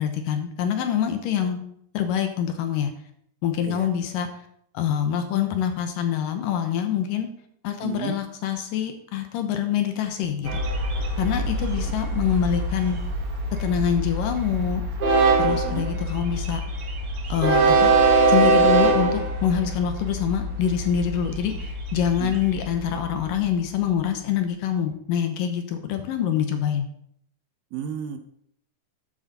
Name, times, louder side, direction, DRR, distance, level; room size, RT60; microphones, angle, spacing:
voice 1, 0.0-1.6 1.9-2.9 3.4-4.4 4.7-7.3 7.6-10.6 11.2-13.0 13.6-14.8 15.4-16.6 17.3-18.0 18.3-26.9, left 9 dB, 75° left, 7 dB, 2.4 m, -25 dB
voice 2, 7.8-8.1 11.8-11.9 15.5-15.9 22.2-22.4 27.7-28.2, right 9 dB, 75° right, 7 dB, 2.4 m, -33 dB
Train, 10.5-23.4, right 3 dB, 50° right, 1.9 m, -23 dB
13.0 x 7.9 x 4.1 m, 0.69 s
omnidirectional pair, 4.4 m